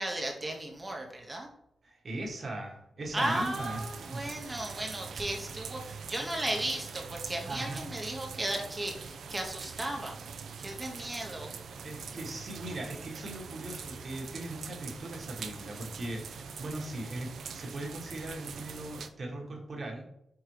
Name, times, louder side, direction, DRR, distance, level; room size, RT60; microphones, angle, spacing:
voice 1, 0.0-1.5 3.1-10.1 10.6-11.5, right 1 dB, 25° right, 1 dB, 0.7 m, -35 dB
voice 2, 1.8-4.2 7.4-7.9 11.0-11.1 11.8-20.1, right 1 dB, 55° right, 0 dB, 1.2 m, -39 dB
sound 1, 3.2-19.1, right 5 dB, 80° right, 0.4 m, -43 dB
4.9 x 3.5 x 3.0 m, 0.80 s
cardioid pair, 80°, 0 cm